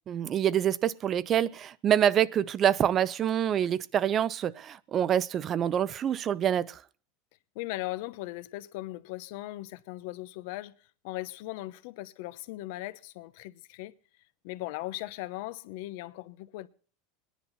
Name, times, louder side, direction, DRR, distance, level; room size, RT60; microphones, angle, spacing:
voice 1, 0.1-6.8, right 10 dB, 35° right, 0.7 m, -26 dB
voice 2, 7.5-10.7 11.0-13.9 14.4-16.7, left 17 dB, 65° left, 0.9 m, -38 dB
20.5 x 10.5 x 4.1 m
supercardioid pair, 120°, 0 cm